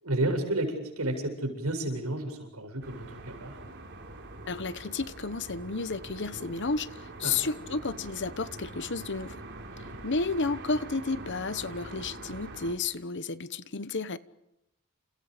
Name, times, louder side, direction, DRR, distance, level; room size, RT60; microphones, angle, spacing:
voice 1, 0.0-3.6 7.2-7.4 9.8-9.9, right 1 dB, 80° right, 8.0 m, -31 dB
sound 1, 2.8-12.7, right 2 dB, 50° right, 4.9 m, -44 dB
voice 2, 4.5-9.4 10.0-14.2, left 4 dB, 55° left, 1.1 m, -32 dB
30.0 x 29.0 x 5.1 m
head